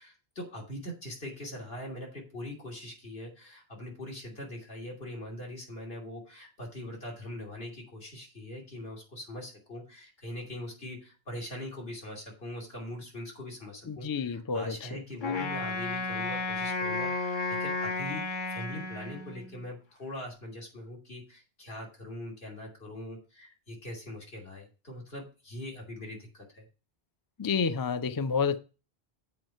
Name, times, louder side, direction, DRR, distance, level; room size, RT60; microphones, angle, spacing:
voice 1, 0.0-26.7, left 1 dB, 75° left, 3.1 m, -42 dB
voice 2, 13.9-15.0 27.4-28.6, left 5 dB, 35° left, 0.4 m, -30 dB
Wind instrument woodwind instrument, 15.2-19.6, left 3 dB, 55° left, 1.2 m, -33 dB
7.6 x 4.9 x 6.5 m
omnidirectional pair, 1.0 m